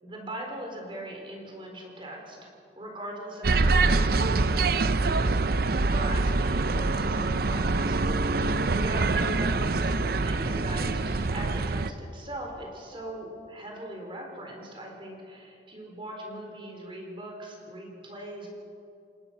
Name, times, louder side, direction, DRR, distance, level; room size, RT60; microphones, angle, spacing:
voice 1, 0.0-2.5 2.8-5.4 5.8-18.5, right 1 dB, 30° right, 1 dB, 4.1 m, -40 dB
sound 1, 3.4-11.9, right 3 dB, 55° right, 0.7 m, -25 dB
28.5 x 19.0 x 6.0 m, 2.5 s
head